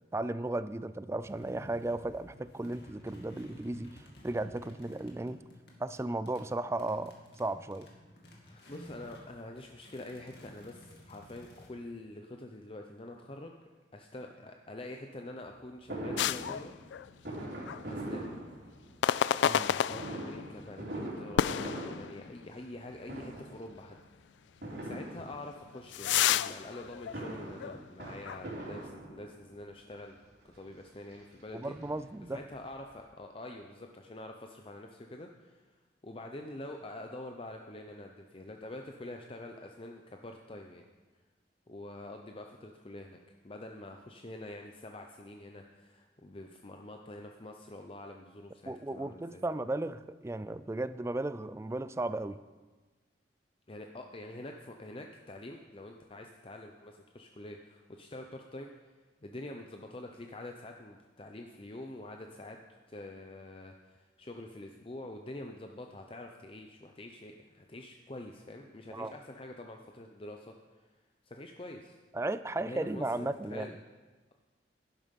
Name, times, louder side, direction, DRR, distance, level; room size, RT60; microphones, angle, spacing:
voice 1, 0.1-5.4 5.8-7.9 19.5-19.8 31.5-32.4 48.7-52.4 68.9-69.2 72.1-73.7, right 2 dB, 15° right, 14 dB, 0.3 m, -35 dB
sound 1, 1.2-9.3 9.5-11.7, left 1 dB, 65° left, 2.3 m, -54 dB
voice 2, 8.4-13.6 13.9-16.8 17.9-18.3 19.8-24.0 24.8-30.2 30.4-31.8 32.3-35.8 36.0-40.8 41.7-49.4 53.7-58.7 59.2-62.6 62.9-70.6 71.2-72.0 72.5-73.7, left 1 dB, 30° left, 3 dB, 0.7 m, -46 dB
Fireworks, 15.9-19.1 19.9-22.8 23.0-23.7 24.6-25.7 26.8-29.5 30.3-30.4 30.7-30.8 31.1-32.3 32.7-32.8 32.9-33.0, right 1 dB, 65° right, 3.8 m, -42 dB
sound 2, 16.2-17.4 17.7-17.9 19.0-20.5 21.4-22.5 23.0-23.1 23.8-23.9 25.2-27.9 28.2-28.4, left 9 dB, 80° left, 0.3 m, -31 dB
11.0 x 11.0 x 5.3 m, 1.3 s
head